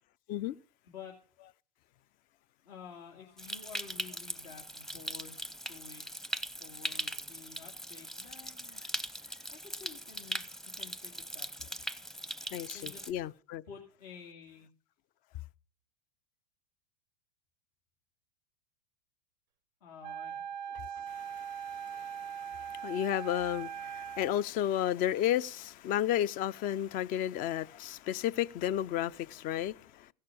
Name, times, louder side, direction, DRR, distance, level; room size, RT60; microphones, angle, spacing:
voice 1, 0.8-1.2 2.6-5.4 5.7-6.1 6.6-8.8 9.5-10.4 10.7-11.8 12.7-13.2 13.7-14.6 19.8-20.4, left 6 dB, 70° left, 2.7 m, -51 dB
Stream, 3.4-13.1, right 1 dB, ahead, 0.7 m, -40 dB
voice 2, 12.5-13.6 21.1-30.1, left 11 dB, 40° left, 0.5 m, -33 dB
Wind instrument woodwind instrument, 20.0-24.4, right 8 dB, 90° right, 0.5 m, -41 dB
16.0 x 6.5 x 6.8 m
hypercardioid pair, 110°, 21 cm